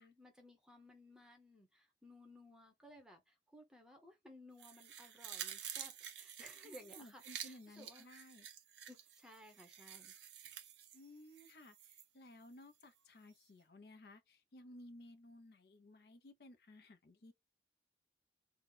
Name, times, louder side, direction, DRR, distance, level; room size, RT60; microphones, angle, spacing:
voice 1, 0.0-8.1 8.9-10.1, left 1 dB, 5° right, 0.7 m, -59 dB
sound 1, 4.6-12.1 12.4-12.5, right 9 dB, 85° right, 0.7 m, -50 dB
voice 2, 6.6-8.5 10.9-17.3, left 1 dB, 60° left, 0.5 m, -58 dB
2.8 x 2.0 x 3.7 m
head